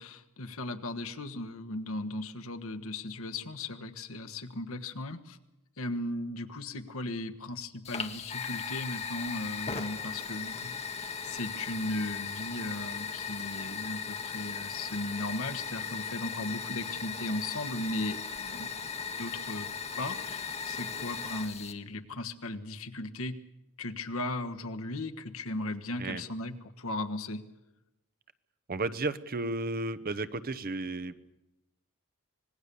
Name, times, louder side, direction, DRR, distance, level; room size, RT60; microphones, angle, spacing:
voice 1, 0.0-5.4 5.8-18.7 19.2-19.7 20.0-23.4 23.8-27.4, left 2 dB, 65° left, 6 dB, 1.4 m, -37 dB
Fire, 7.8-21.7, left 6 dB, 30° left, 1.4 m, -37 dB
voice 2, 28.7-31.1, right 2 dB, 45° right, 13 dB, 0.8 m, -33 dB
25.5 x 20.0 x 6.9 m, 0.97 s
head